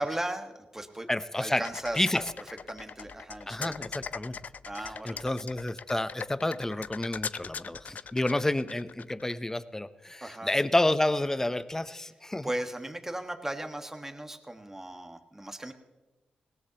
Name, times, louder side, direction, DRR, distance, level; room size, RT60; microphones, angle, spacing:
voice 1, 0.0-1.1 1.4-2.1 2.7-3.8 4.7-5.2 10.2-10.5 12.4-15.7, right 1 dB, 15° right, 6 dB, 1.5 m, -36 dB
voice 2, 1.1-1.6 1.9-2.3 3.5-4.4 4.8-12.5, left 1 dB, 15° left, 14 dB, 0.7 m, -30 dB
sound 1, 1.6-9.3, left 6 dB, 60° left, 0.4 m, -40 dB
20.0 x 17.5 x 3.0 m, 1.2 s
cardioid pair, 60°, 3 cm